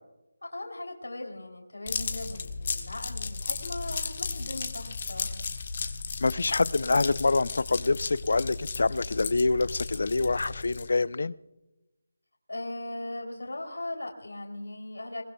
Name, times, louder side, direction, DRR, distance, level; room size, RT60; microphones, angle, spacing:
voice 1, 0.4-5.4 12.5-15.2, left 1 dB, 85° left, 3.1 m, -38 dB
sound 1, 1.9-11.0, left 4 dB, 40° left, 1.4 m, -35 dB
voice 2, 6.2-11.4, left 3 dB, 60° left, 0.5 m, -26 dB
22.5 x 20.0 x 2.3 m
figure-of-eight pair, 165°, 0 cm